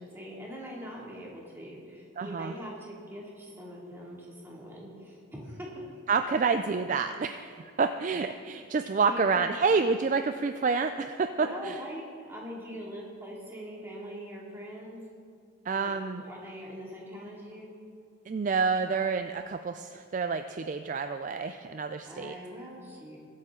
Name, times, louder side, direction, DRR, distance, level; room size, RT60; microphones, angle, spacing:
voice 1, 0.0-6.0 9.0-9.3 11.4-15.0 15.7-17.7 22.0-23.2, equal, 10° right, -4 dB, 2.4 m, -42 dB
voice 2, 2.2-2.5 6.1-11.8 15.6-16.2 18.3-22.3, right 5 dB, 35° right, 8 dB, 0.3 m, -28 dB
22.0 x 8.4 x 3.8 m, 2.3 s
head